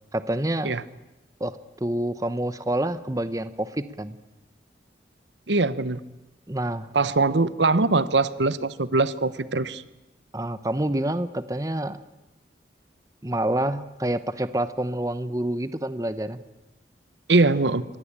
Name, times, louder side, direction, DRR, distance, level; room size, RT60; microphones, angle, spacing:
voice 1, 0.1-0.7 1.4-4.2 6.5-6.9 10.3-12.0 13.2-16.4, right 1 dB, 20° right, 13 dB, 0.8 m, -27 dB
voice 2, 5.5-6.0 6.9-9.8 17.3-17.8, right 3 dB, 80° right, 16 dB, 1.1 m, -22 dB
24.5 x 19.0 x 8.8 m, 1.0 s
head